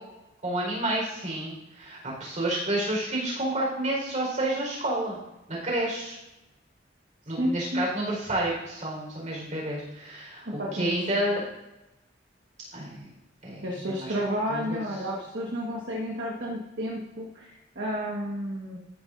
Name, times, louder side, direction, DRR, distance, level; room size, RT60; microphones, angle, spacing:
voice 1, 0.4-5.2 5.5-6.2 7.3-10.4 10.7-11.4 12.7-13.1 13.4-14.1 14.5-14.8, right 1 dB, 40° right, -3 dB, 4.2 m, -30 dB
voice 2, 7.4-7.8 10.4-10.9 13.6-18.8, equal, 70° right, -3 dB, 1.4 m, -31 dB
14.0 x 9.3 x 2.5 m, 0.95 s
head